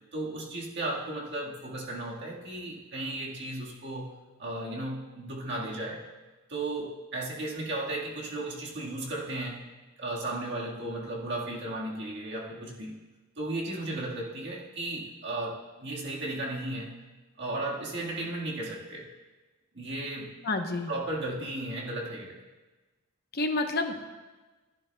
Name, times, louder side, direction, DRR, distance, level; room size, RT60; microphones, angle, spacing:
voice 1, 0.1-4.1 4.4-6.0 6.5-9.6 10.0-13.0 13.4-16.9 17.4-19.1 19.7-20.3 20.9-22.4, right 2 dB, 50° right, -3 dB, 1.7 m, -35 dB
voice 2, 20.4-20.9 23.3-24.0, left 2 dB, 45° left, 5 dB, 0.9 m, -29 dB
14.0 x 11.0 x 2.3 m, 1.2 s
head